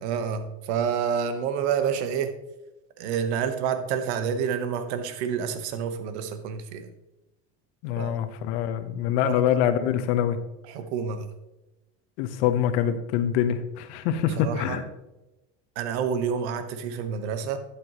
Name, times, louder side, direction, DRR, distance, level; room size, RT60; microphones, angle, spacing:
voice 1, 0.0-2.3 3.0-6.9 8.0-8.2 9.2-9.4 10.6-11.3 14.3-14.8 15.8-17.6, right 7 dB, 75° right, 9 dB, 1.2 m, -28 dB
voice 2, 7.8-10.4 12.2-14.8, left 9 dB, 70° left, 10 dB, 1.1 m, -25 dB
11.5 x 8.5 x 3.1 m, 0.99 s
supercardioid pair, 105°, 34 cm